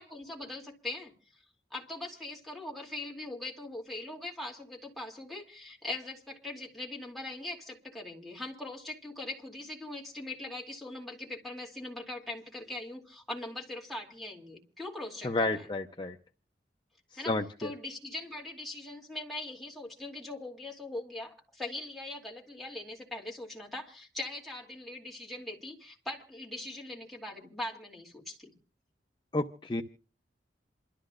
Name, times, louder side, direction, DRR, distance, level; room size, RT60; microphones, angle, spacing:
voice 1, 0.0-1.4 1.7-15.7 17.1-17.3 17.6-28.5, left 2 dB, ahead, 2.7 m, -41 dB
voice 2, 15.2-16.2 17.3-17.7 29.3-29.8, left 2 dB, 25° left, 0.6 m, -31 dB
27.5 x 13.0 x 2.5 m
head